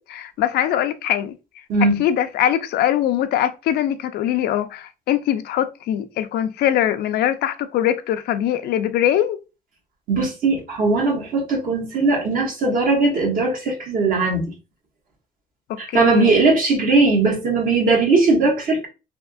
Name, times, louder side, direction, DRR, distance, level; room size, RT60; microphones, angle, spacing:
voice 1, 0.0-1.3 2.0-9.4 15.7-16.3, left 11 dB, 70° left, 0.4 m, -22 dB
voice 2, 1.7-2.0 10.1-14.5 15.8-18.9, right 3 dB, 55° right, 1.5 m, -19 dB
3.5 x 2.8 x 2.3 m
cardioid pair, 110°, 17 cm